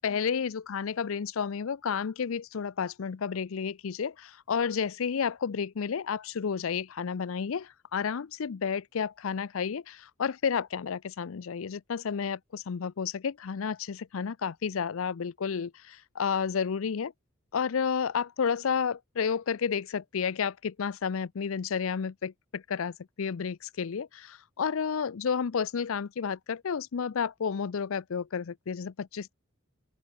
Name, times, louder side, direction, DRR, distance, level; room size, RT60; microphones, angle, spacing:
voice 1, 0.0-17.1 17.5-29.3, left 6 dB, 75° left, 0.5 m, -31 dB
open air
head